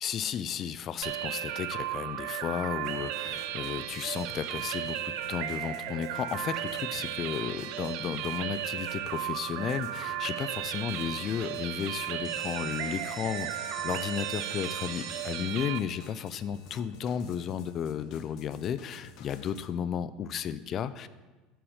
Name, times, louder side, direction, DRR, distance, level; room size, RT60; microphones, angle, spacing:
voice 1, 0.0-21.1, left 8 dB, 35° left, 14 dB, 0.3 m, -34 dB
sound 1, 1.0-15.8, right 12 dB, 65° right, 0.4 m, -35 dB
sound 2, 2.8-19.7, left 5 dB, 55° left, 0.7 m, -52 dB
sound 3, 12.2-17.9, right 3 dB, 35° right, 2.0 m, -47 dB
6.0 x 4.8 x 6.4 m, 1.2 s
supercardioid pair, 145°, 0 cm